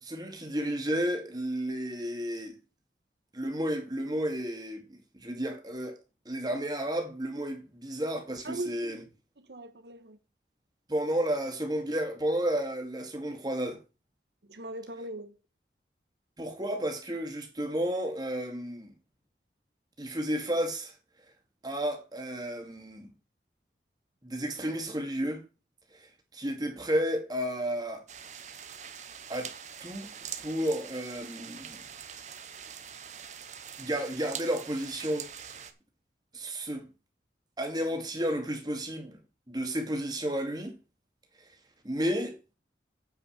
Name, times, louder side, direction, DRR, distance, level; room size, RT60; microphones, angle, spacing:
voice 1, 0.0-2.6 3.3-6.0 6.3-9.0 10.9-13.8 16.4-18.9 20.0-20.9 21.6-23.1 24.2-25.4 26.3-28.0 29.3-29.5 29.8-30.1 30.4-31.8 33.8-35.6 36.3-36.9 37.6-39.2 39.5-40.7 41.8-42.3, equal, 25° right, 2.2 m, -32 dB
voice 2, 8.4-9.0 9.4-10.2 14.4-15.3, right 1 dB, 75° right, 1.4 m, -40 dB
sound 1, 28.1-35.7, right 8 dB, 45° right, 1.0 m, -44 dB
9.1 x 5.4 x 6.4 m
head